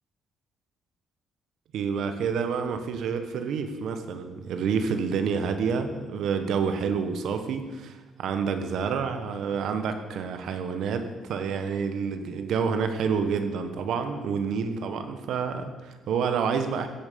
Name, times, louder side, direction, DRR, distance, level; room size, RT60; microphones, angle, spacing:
voice 1, 1.7-16.9, right 6 dB, 60° right, 7 dB, 1.5 m, -28 dB
15.5 x 9.3 x 7.0 m, 1.3 s
cardioid pair, 175°, 0 cm